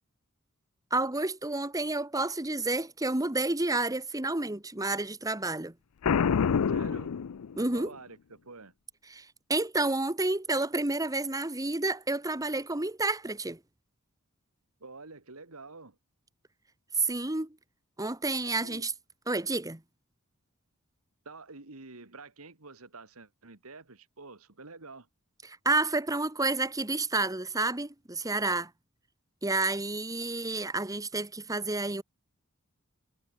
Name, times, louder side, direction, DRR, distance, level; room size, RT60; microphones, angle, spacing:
voice 1, 0.9-5.7 7.6-7.9 9.1-13.6 17.0-17.6 18.0-18.9 19.3-19.8 25.4-28.7 29.4-32.0, right 2 dB, 15° right, 1.5 m, -30 dB
Boom, 6.0-7.9, left 6 dB, 80° left, 0.5 m, -27 dB
voice 2, 6.7-7.1 7.5-8.7 14.8-16.0 18.6-18.8 21.3-25.1, right 3 dB, 70° right, 2.3 m, -48 dB
head